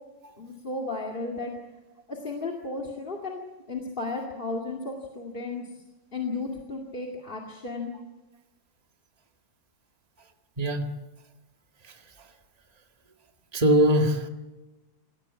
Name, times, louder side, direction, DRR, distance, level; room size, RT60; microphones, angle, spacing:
voice 1, 0.4-1.5 2.1-3.4 3.7-5.8 6.1-7.9, left 3 dB, 25° left, 2.4 m, -34 dB
voice 2, 10.6-10.9 11.8-12.3 13.5-14.3, equal, 20° right, 1.9 m, -23 dB
27.0 x 17.0 x 8.5 m
omnidirectional pair, 2.2 m